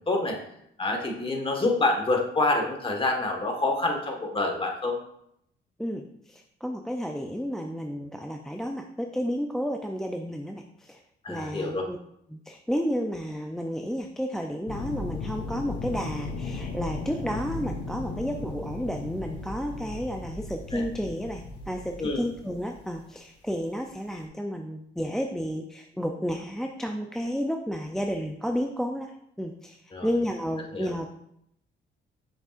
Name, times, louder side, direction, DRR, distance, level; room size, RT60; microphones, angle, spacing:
voice 1, 0.1-0.4 0.8-5.0 11.2-11.8 20.7-20.8 22.0-22.2 29.9-30.1 30.7-30.9, left 2 dB, 25° left, 1 dB, 1.4 m, -27 dB
voice 2, 5.8-11.0 11.3-12.0 12.3-29.1 29.4-31.1, equal, ahead, 3 dB, 0.4 m, -32 dB
sound 1, 14.7-22.8 24.2-24.3, left 3 dB, 65° left, 1.2 m, -36 dB
7.5 x 6.3 x 2.5 m, 0.75 s
cardioid pair, 90°, 20 cm